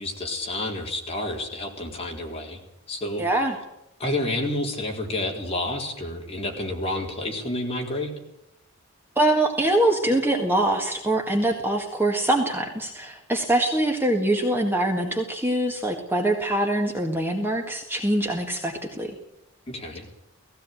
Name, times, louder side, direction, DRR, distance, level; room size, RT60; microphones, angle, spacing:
voice 1, 0.0-2.6 2.9-3.2 4.0-8.1 19.7-20.1, left 1 dB, 25° left, 0 dB, 4.0 m, -29 dB
voice 2, 3.2-3.6 9.2-19.1, right 1 dB, 10° right, 1 dB, 1.7 m, -23 dB
18.0 x 16.5 x 9.2 m, 0.87 s
head